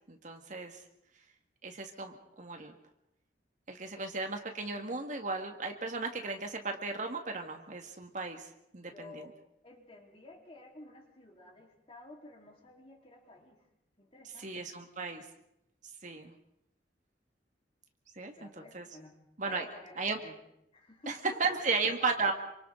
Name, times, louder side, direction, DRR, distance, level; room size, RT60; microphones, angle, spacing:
voice 1, 0.1-0.8 1.6-2.7 3.7-8.5 8.7-9.2 14.4-15.2 16.0-16.3 18.2-18.9 19.4-19.7 20.0-20.2 21.1-22.3, right 4 dB, 45° right, 4 dB, 2.0 m, -35 dB
voice 2, 8.8-9.4 9.6-13.6 14.0-14.7 18.4-19.2 19.4-20.4 20.7-22.3, left 2 dB, 30° left, 0 dB, 4.1 m, -52 dB
28.5 x 25.5 x 3.9 m, 0.80 s
head